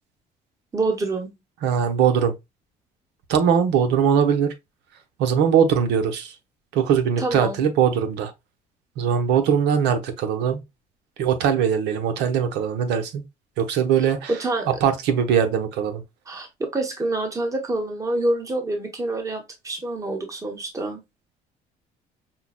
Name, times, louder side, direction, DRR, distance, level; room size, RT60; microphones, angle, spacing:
voice 1, 0.7-1.3 7.2-7.6 14.0-14.7 16.3-21.0, right 2 dB, 20° right, 1.1 m, -27 dB
voice 2, 1.6-2.3 3.3-4.5 5.2-6.3 6.7-8.3 9.0-10.6 11.2-13.2 13.6-14.3 14.8-16.0, right 7 dB, 90° right, 1.0 m, -21 dB
5.6 x 2.3 x 2.3 m
cardioid pair, 110°, 17 cm